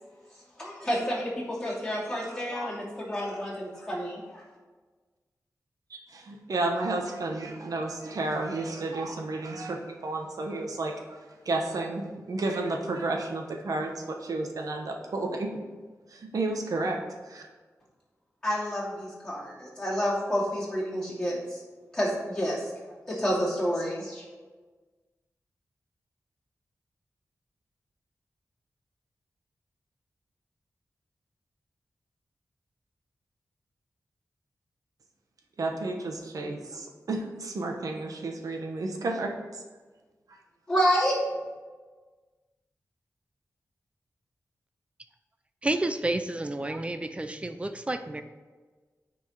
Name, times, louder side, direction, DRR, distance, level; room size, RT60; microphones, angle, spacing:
voice 1, 0.6-4.4 18.4-21.6 21.9-22.6 22.8-24.2 40.7-41.2, equal, 10° left, -7 dB, 2.8 m, -29 dB
voice 2, 6.1-11.2 11.4-15.5 16.1-17.0 17.2-17.5 35.6-39.6, right 2 dB, 75° right, 2 dB, 1.2 m, -32 dB
voice 3, 45.6-48.2, right 2 dB, 20° right, 9 dB, 0.5 m, -30 dB
9.4 x 4.6 x 5.8 m, 1.4 s
wide cardioid pair, 140°, 6 cm